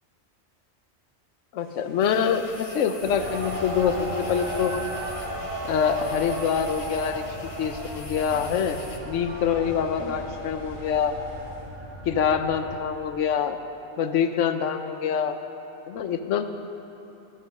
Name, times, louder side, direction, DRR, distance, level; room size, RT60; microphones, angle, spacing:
voice 1, 1.5-4.8 5.6-7.3 7.6-8.8 9.0-11.1 12.1-13.6 14.0-15.4 15.9-16.5, left 7 dB, 90° left, 8 dB, 1.0 m, -25 dB
sound 1, 1.6-11.6, left 3 dB, 50° right, 3.3 m, -40 dB
sound 2, 2.0-9.0, left 3 dB, 35° left, 0.8 m, -45 dB
sound 3, 3.0-12.7, right 2 dB, 85° right, 1.7 m, -36 dB
11.5 x 7.8 x 6.5 m, 3.0 s
omnidirectional pair, 1.2 m